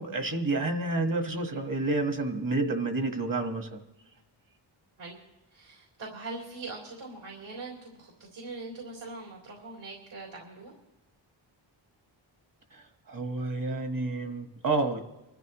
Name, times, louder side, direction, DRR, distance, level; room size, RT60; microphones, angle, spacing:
voice 1, 0.0-3.8 12.7-15.0, right 2 dB, 45° right, 5 dB, 1.6 m, -29 dB
voice 2, 5.5-10.7, right 3 dB, 70° right, -4 dB, 3.9 m, -42 dB
25.5 x 13.5 x 3.1 m, 1.1 s
wide cardioid pair, 100°, 48 cm